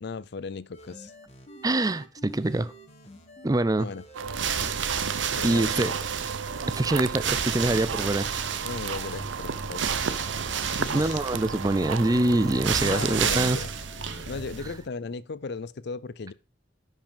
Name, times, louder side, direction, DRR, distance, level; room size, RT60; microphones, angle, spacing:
voice 1, 0.0-1.1 3.8-4.0 5.4-6.0 8.6-10.0 10.6-11.2 12.8-13.7 14.3-16.3, left 4 dB, 60° left, 0.5 m, -36 dB
sound 1, 0.7-3.5 3.9-7.1 7.5-8.3 8.9-12.6 13.2-14.6, left 1 dB, 35° left, 1.8 m, -50 dB
voice 2, 1.6-2.7 3.4-3.9 5.4-5.9 6.7-8.3 10.9-13.6, right 2 dB, 20° right, 0.5 m, -24 dB
sound 2, 4.1-13.3, right 7 dB, 90° right, 0.5 m, -34 dB
sound 3, 4.2-14.9, right 7 dB, 70° right, 1.0 m, -31 dB
10.5 x 5.5 x 5.1 m
head